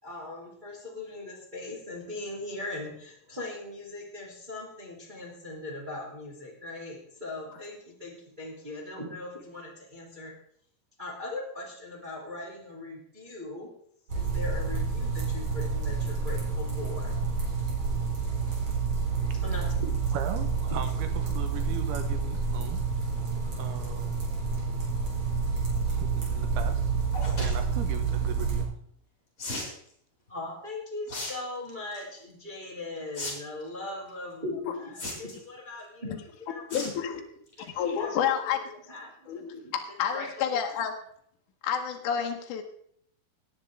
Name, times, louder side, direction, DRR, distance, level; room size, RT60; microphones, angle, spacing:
voice 1, 0.0-10.4 11.0-13.7 14.1-17.2 18.2-18.4 18.8-18.9 19.3-20.1 20.7-20.8 30.3-36.9 37.6-39.7 40.1-40.7, left 2 dB, 15° right, -3 dB, 2.2 m, -40 dB
sound 1, 14.1-28.6, right 5 dB, 35° right, 4.5 m, -29 dB
voice 2, 20.1-22.8 23.4-24.1 25.9-26.9 27.3-28.7, right 8 dB, 80° right, 8 dB, 3.0 m, -38 dB
sound 2, 27.1-27.5 29.4-29.7 31.1-31.3 31.7-32.0 33.1-33.3 33.6-33.7 34.9-35.4 36.7-37.0 37.4-37.6 38.0-38.1 38.2-38.3, left 2 dB, 20° left, 3.9 m, -35 dB
voice 3, 36.7-37.2 37.8-38.6 39.3-40.9 41.6-42.6, left 8 dB, 70° left, 3 dB, 2.1 m, -29 dB
18.0 x 9.8 x 3.5 m, 0.65 s
omnidirectional pair, 4.6 m